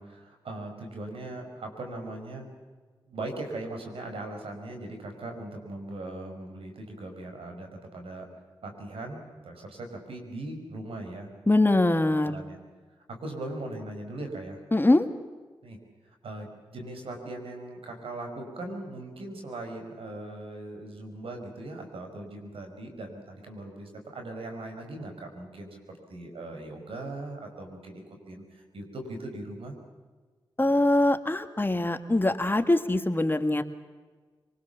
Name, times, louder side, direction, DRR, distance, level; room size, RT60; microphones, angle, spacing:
voice 1, 0.0-2.4 3.1-8.3 8.6-11.3 11.7-12.6 13.1-14.6 15.6-15.8 16.2-29.7, right 2 dB, 85° right, 3 dB, 5.3 m, -39 dB
voice 2, 11.5-12.4 14.7-15.1 30.6-33.6, left 2 dB, 20° left, 8 dB, 1.8 m, -23 dB
25.5 x 20.0 x 7.2 m, 1.4 s
cardioid pair, 55°, 9 cm